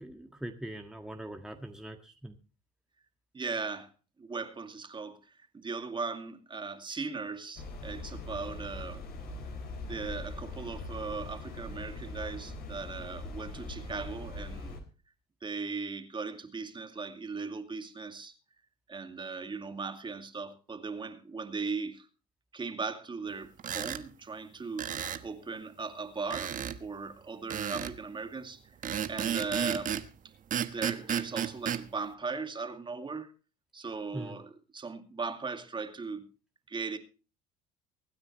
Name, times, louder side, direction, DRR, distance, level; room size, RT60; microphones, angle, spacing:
voice 1, 0.0-2.3 34.1-34.4, right 1 dB, 5° right, 1.7 m, -42 dB
voice 2, 3.3-3.9 4.2-9.0 9.9-14.8 15.4-18.3 18.9-22.1 22.5-28.8 29.1-29.9 30.6-33.3 33.7-36.3 36.7-37.0, right 4 dB, 25° right, 2.3 m, -38 dB
sound 1, 7.6-14.8, left 2 dB, 55° left, 4.4 m, -41 dB
sound 2, 23.6-24.0 24.8-25.3 26.3-26.8 27.5-28.0 28.8-30.1 30.5-31.8, right 9 dB, 45° right, 1.3 m, -33 dB
24.5 x 9.5 x 3.1 m
hypercardioid pair, 75°, 19 cm